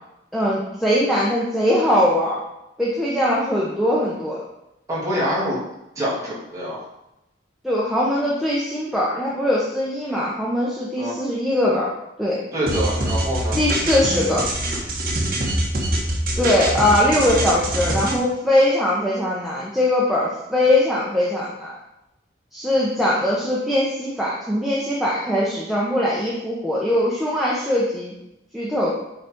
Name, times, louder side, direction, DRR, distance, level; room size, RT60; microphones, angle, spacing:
voice 1, 0.3-2.4 2.8-4.4 7.6-11.9 12.2-12.4 13.5-14.5 16.4-21.8 22.5-28.2 28.5-28.9, left 1 dB, ahead, -6 dB, 0.9 m, -21 dB
voice 2, 4.9-5.6 6.0-6.8 11.0-11.2 12.5-13.6, equal, 20° right, -8 dB, 2.6 m, -25 dB
sound 1, 12.7-18.2, right 1 dB, 45° right, 1.4 m, -24 dB
8.7 x 4.1 x 4.5 m, 0.89 s
head